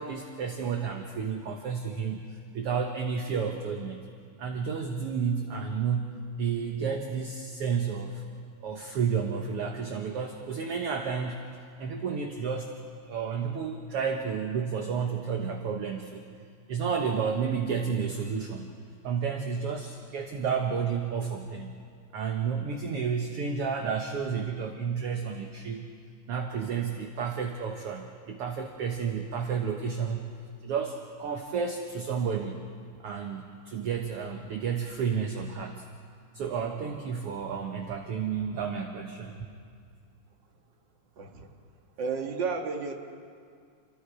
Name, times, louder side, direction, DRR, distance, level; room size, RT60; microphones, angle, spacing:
voice 1, 0.0-4.0 4.4-8.2 8.6-11.4 11.8-12.8 13.1-16.2 16.7-18.7 19.0-21.8 22.1-25.9 26.3-30.3 30.6-32.6 33.0-35.8 36.3-39.5, right 6 dB, 60° right, 3 dB, 1.9 m, -31 dB
voice 2, 41.2-41.5 42.0-42.9, right 5 dB, 45° right, 2 dB, 2.1 m, -32 dB
29.0 x 23.5 x 4.9 m, 2.2 s
omnidirectional pair, 3.4 m